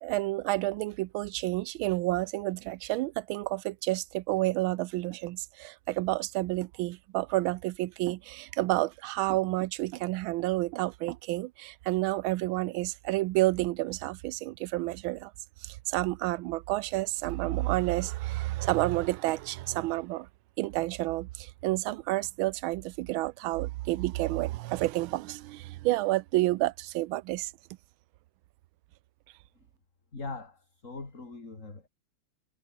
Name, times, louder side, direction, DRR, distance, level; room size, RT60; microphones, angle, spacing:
voice 1, 0.0-15.3 15.6-20.3 20.6-27.5, right 18 dB, 80° right, 1.4 m, -30 dB
voice 2, 30.1-31.9, left 3 dB, 35° left, 3.9 m, -41 dB
omnidirectional pair, 2.3 m